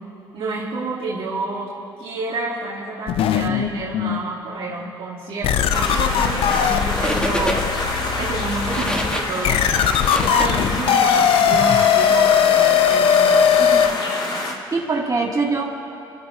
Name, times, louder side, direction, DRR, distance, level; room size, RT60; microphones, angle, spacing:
voice 1, 0.3-1.7 2.0-7.7 8.1-9.6 10.3-13.8, right 3 dB, 65° right, -5 dB, 2.2 m, -29 dB
sound 1, 3.1-4.2 4.8-4.9 5.4-13.9, left 8 dB, 70° left, 0.7 m, -19 dB
sound 2, 5.7-14.5, left 2 dB, 55° left, 2.9 m, -27 dB
sound 3, 6.3-6.7 6.9-7.9 8.4-11.1, left 1 dB, 10° left, 1.8 m, -27 dB
voice 2, 13.6-14.0 14.7-15.6, right 4 dB, 35° right, -3 dB, 3.2 m, -23 dB
29.5 x 12.5 x 3.1 m, 2.8 s
hypercardioid pair, 55°, 10 cm